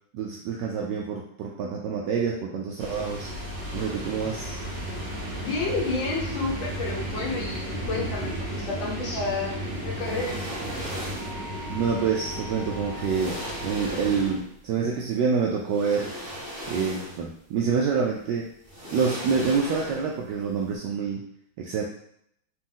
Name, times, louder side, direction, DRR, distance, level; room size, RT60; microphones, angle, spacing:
voice 1, 0.1-3.3 3.7-4.6 11.7-13.4 13.6-16.1 16.7-18.5 18.9-21.2 21.6-21.8, right 5 dB, 75° right, -2 dB, 1.1 m, -27 dB
sound 1, 2.8-14.3, equal, 40° right, 1.1 m, -34 dB
voice 2, 5.4-10.4, left 3 dB, 75° left, -3 dB, 1.7 m, -30 dB
sound 2, 9.9-11.4 12.5-12.6 13.0-14.6 15.6-17.4 17.7-17.8 18.6-20.3 20.5-20.7, equal, 10° right, 1.3 m, -38 dB
4.1 x 2.5 x 3.7 m, 0.71 s
omnidirectional pair, 2.1 m